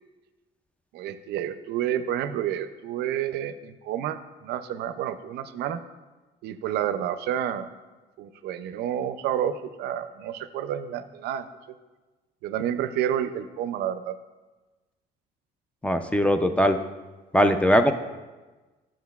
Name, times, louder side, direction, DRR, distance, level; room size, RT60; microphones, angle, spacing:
voice 1, 0.9-5.8 6.4-7.7 8.2-11.5 12.4-14.1, right 10 dB, 75° right, 11 dB, 0.4 m, -29 dB
voice 2, 15.8-16.8 17.3-17.9, equal, 5° left, 8 dB, 0.3 m, -20 dB
9.3 x 7.3 x 2.3 m, 1.2 s
cardioid pair, 110°, 17 cm